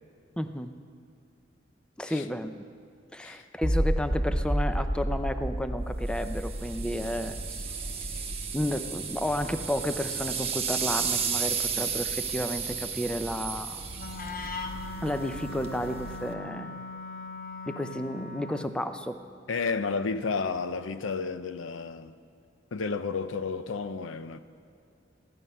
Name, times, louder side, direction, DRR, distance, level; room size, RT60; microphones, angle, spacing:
voice 1, 0.4-0.7 2.0-2.7 3.1-7.6 7.9-8.2 8.5-13.8 15.0-16.8 17.7-19.2, equal, 5° left, 0.5 m, -32 dB
sound 1, 3.6-9.7, equal, 15° right, 1.4 m, -31 dB
sound 2, 6.1-16.3, right 6 dB, 30° right, 1.0 m, -34 dB
Wind instrument woodwind instrument, 13.9-18.8, left 3 dB, 50° left, 0.8 m, -39 dB
voice 2, 19.5-22.1 22.7-24.4, left 4 dB, 80° left, 0.6 m, -31 dB
15.5 x 11.5 x 5.4 m
head